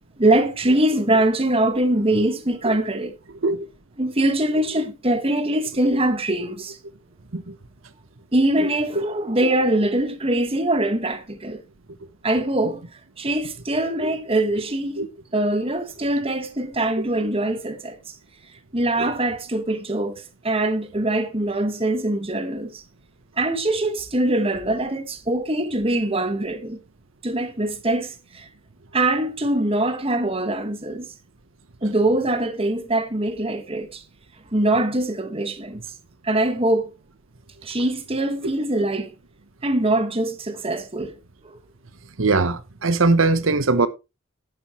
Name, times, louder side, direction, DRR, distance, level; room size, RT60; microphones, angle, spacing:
voice 1, 0.2-3.1 4.0-6.8 8.3-11.6 12.2-12.8 13.2-15.0 15.3-18.1 18.7-22.8 23.4-26.8 27.2-28.5 28.9-31.1 31.8-34.0 34.5-35.8 36.2-36.9 37.6-39.1 39.6-41.1 41.4-41.6, right 1 dB, 30° right, 1.6 m, -23 dB
voice 2, 42.2-43.9, right 3 dB, 85° right, 1.0 m, -20 dB
11.0 x 10.0 x 3.1 m
head